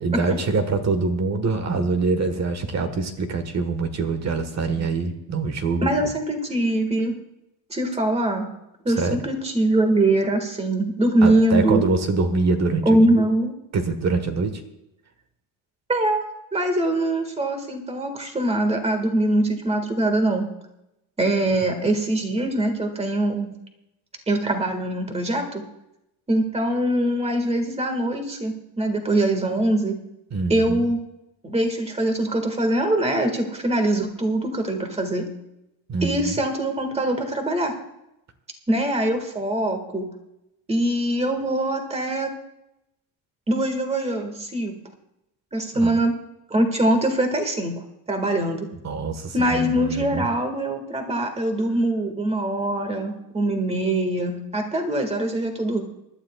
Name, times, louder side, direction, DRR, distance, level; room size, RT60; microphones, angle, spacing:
voice 1, 0.0-5.9 8.9-9.2 11.2-13.3 13.7-14.6 30.3-30.9 35.9-36.3 45.7-46.0 48.8-50.3, right 3 dB, 40° right, 8 dB, 1.4 m, -24 dB
voice 2, 5.8-7.1 7.7-8.5 8.9-11.8 12.9-13.5 15.9-16.2 16.5-20.5 21.2-23.5 24.3-25.6 26.3-30.0 30.5-31.0 31.4-35.3 36.0-37.7 38.7-40.1 40.7-42.3 43.5-44.8 45.5-46.1 46.5-47.7 48.1-48.7 49.3-55.8, right 1 dB, 15° right, 5 dB, 1.8 m, -23 dB
25.0 x 12.0 x 2.3 m, 0.87 s
cardioid pair, 145°, 42 cm